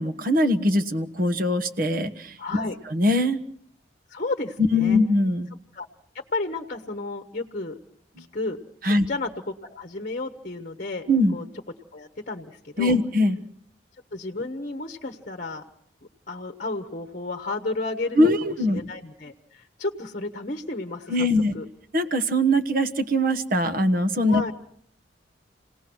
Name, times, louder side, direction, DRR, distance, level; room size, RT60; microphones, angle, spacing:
voice 1, 0.0-2.6 2.9-3.4 4.7-5.5 8.8-9.1 11.1-11.3 12.8-13.4 18.2-18.8 21.1-21.5 21.9-24.4, left 1 dB, 50° right, 9 dB, 1.3 m, -22 dB
voice 2, 2.4-2.8 4.1-5.0 5.7-5.9 6.3-7.8 8.2-11.4 11.9-13.0 14.1-15.6 16.3-21.3 21.5-21.6 24.3-24.5, left 2 dB, 45° left, 6 dB, 1.1 m, -32 dB
28.5 x 18.5 x 6.2 m, 0.65 s
head